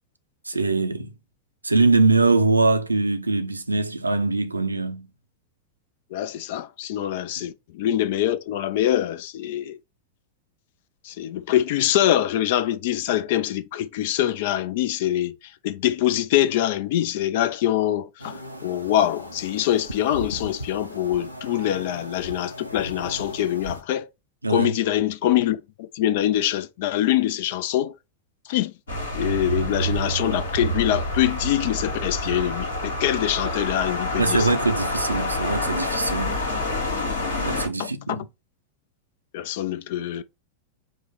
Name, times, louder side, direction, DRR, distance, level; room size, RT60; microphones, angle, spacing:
voice 1, 0.5-1.1 1.6-5.1 7.4-7.5 24.4-24.7 34.2-36.4 37.3-38.3, right 3 dB, 80° right, 0.5 m, -22 dB
voice 2, 6.1-9.8 11.0-15.3 15.6-24.1 24.5-27.9 28.5-28.7 29.1-34.5 37.8-38.2 39.3-40.2, left 12 dB, 50° left, 0.5 m, -24 dB
sound 1, 18.2-23.8, equal, 90° left, 0.8 m, -38 dB
sound 2, 28.9-37.7, left 1 dB, 70° left, 1.6 m, -27 dB
4.8 x 2.2 x 4.2 m
figure-of-eight pair, 90°, 0 cm